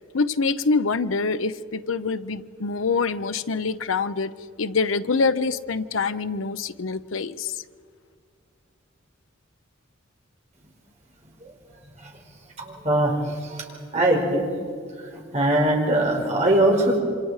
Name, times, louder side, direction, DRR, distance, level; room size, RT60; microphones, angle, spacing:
voice 1, 0.1-4.3 4.6-7.6, left 4 dB, 80° left, 12 dB, 0.8 m, -25 dB
voice 2, 12.6-13.6 13.9-14.4 15.1-17.0, right 1 dB, 35° right, -1 dB, 4.8 m, -21 dB
27.5 x 25.5 x 4.9 m, 2.1 s
head